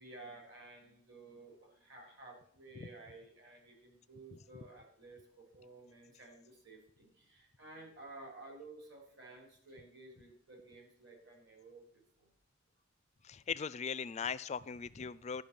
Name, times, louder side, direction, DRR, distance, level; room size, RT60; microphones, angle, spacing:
voice 1, 0.0-12.3, right 2 dB, 60° right, 2 dB, 3.7 m, -54 dB
voice 2, 13.2-15.4, left 6 dB, 35° left, 17 dB, 0.4 m, -39 dB
11.5 x 5.7 x 6.8 m, 0.64 s
head